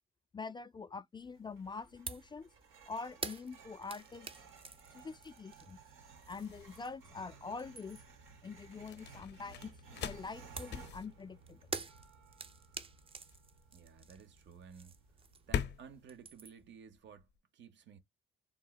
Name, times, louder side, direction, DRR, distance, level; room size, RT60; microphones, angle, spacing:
voice 1, 0.3-2.5 2.9-4.3 4.9-5.8 6.3-8.0 8.4-11.6, left 4 dB, 25° left, 0.3 m, -45 dB
sound 1, 1.2-16.0, right 4 dB, 90° right, 1.6 m, -58 dB
sound 2, 2.1-2.3 2.6-7.1 7.4-8.2 10.6-15.7 15.9-16.7, right 4 dB, 30° right, 0.6 m, -47 dB
sound 3, 3.6-17.4, left 8 dB, 60° left, 0.6 m, -45 dB
voice 2, 13.7-15.0 15.5-18.0, right 7 dB, 65° right, 0.8 m, -55 dB
3.6 x 2.0 x 2.3 m
cardioid pair, 90°, 20 cm